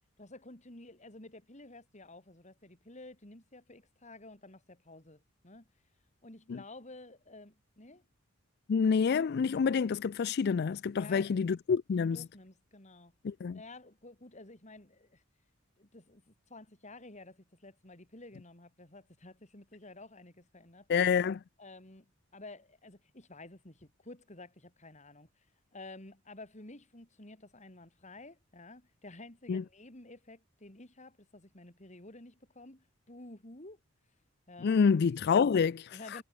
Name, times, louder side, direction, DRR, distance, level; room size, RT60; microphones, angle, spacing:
voice 1, 0.2-5.7 6.2-8.0 10.9-11.3 11.9-13.1 13.5-15.2 15.8-20.9 21.6-25.5 25.7-33.8 34.5-34.8 35.9-36.2, left 2 dB, 35° left, 3.7 m, -51 dB
voice 2, 8.7-12.2 13.2-13.6 20.9-21.4 29.5-29.6 34.6-36.0, left 6 dB, 55° left, 0.4 m, -27 dB
head